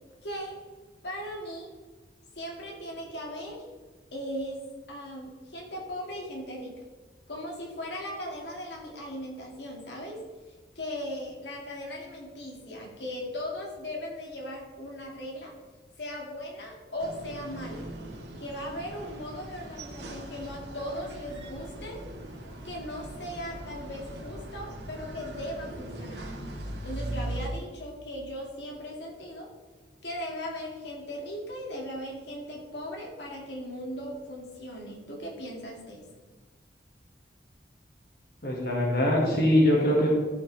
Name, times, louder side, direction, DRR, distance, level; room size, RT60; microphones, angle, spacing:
voice 1, 0.2-0.6 1.0-1.7 2.4-3.6 4.1-4.6 4.9-6.7 7.3-10.2 10.8-15.5 16.0-17.9 18.4-22.0 22.6-26.2 26.8-29.5 30.0-36.0, equal, 80° left, -1 dB, 2.3 m, -38 dB
sound 1, 17.0-27.5, right 1 dB, 85° right, 1.8 m, -40 dB
voice 2, 38.4-40.1, left 1 dB, 55° left, -3 dB, 2.0 m, -22 dB
14.5 x 6.5 x 3.4 m, 1.3 s
head